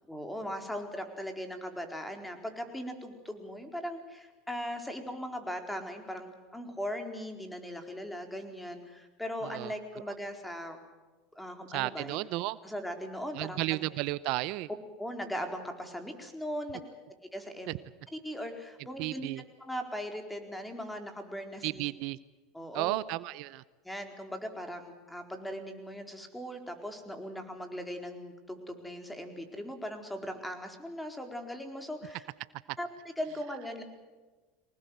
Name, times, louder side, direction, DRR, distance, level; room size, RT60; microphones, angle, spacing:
voice 1, 0.1-10.8 11.4-12.2 12.6-13.8 15.0-16.8 17.3-17.8 18.1-19.3 19.6-21.8 22.5-23.0 23.8-32.3 32.8-32.9 33.2-33.8, equal, 5° left, 5 dB, 4.3 m, -39 dB
voice 2, 11.7-12.6 13.3-14.7 17.7-17.8 19.0-19.4 21.6-22.2 22.7-23.6, right 19 dB, 60° right, 18 dB, 0.7 m, -33 dB
24.5 x 19.5 x 8.0 m, 1.2 s
supercardioid pair, 105°, 0 cm